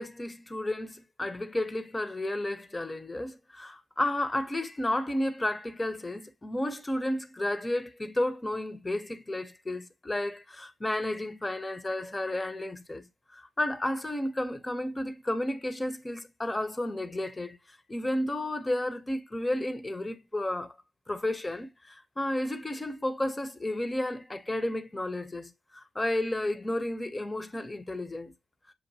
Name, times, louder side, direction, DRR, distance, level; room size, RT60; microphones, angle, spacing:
voice 1, 0.0-17.6 17.9-20.7 21.1-28.3, left 1 dB, 20° left, 0.7 m, -32 dB
6.9 x 2.5 x 2.7 m
cardioid pair, 60°, 0 cm